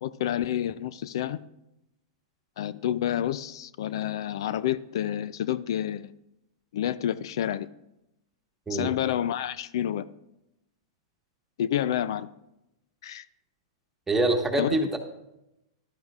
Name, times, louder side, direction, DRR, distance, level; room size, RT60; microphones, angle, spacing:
voice 1, 0.0-1.4 2.6-6.1 6.7-7.7 8.7-10.1 11.6-12.3 13.0-13.3 14.6-14.8, left 11 dB, 70° left, 16 dB, 0.4 m, -29 dB
voice 2, 14.1-15.0, right 2 dB, 10° right, 3 dB, 1.4 m, -25 dB
14.5 x 12.0 x 2.4 m, 0.89 s
hypercardioid pair, 125°, 3 cm